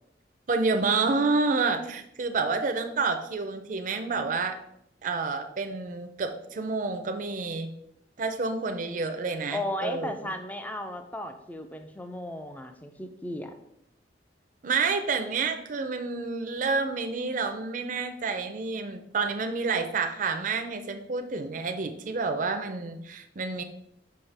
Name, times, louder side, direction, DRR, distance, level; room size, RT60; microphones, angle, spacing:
voice 1, 0.5-4.6 5.0-7.7 8.2-10.1 14.6-23.6, right 4 dB, 45° right, 6 dB, 0.5 m, -29 dB
voice 2, 9.5-13.5, left 1 dB, 10° left, 7 dB, 0.4 m, -35 dB
5.5 x 5.3 x 3.3 m, 0.77 s
head